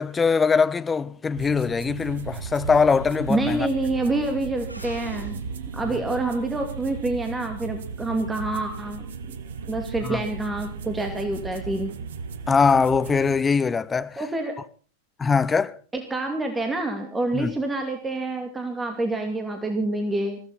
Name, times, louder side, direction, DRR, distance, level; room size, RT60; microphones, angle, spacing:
voice 1, 0.0-3.7 5.9-6.0 10.0-10.2 12.5-14.2 15.2-15.8 17.3-17.5, left 5 dB, 15° left, 0.8 m, -22 dB
sound 1, 1.4-13.4, right 6 dB, 60° right, 1.4 m, -36 dB
sound 2, 2.5-6.8, right 1 dB, 85° right, 6.4 m, -41 dB
voice 2, 3.3-5.4 5.7-9.4 9.7-11.9 14.2-14.5 15.9-20.4, right 2 dB, 10° right, 2.4 m, -27 dB
21.5 x 15.5 x 4.1 m
figure-of-eight pair, 90°, 0 cm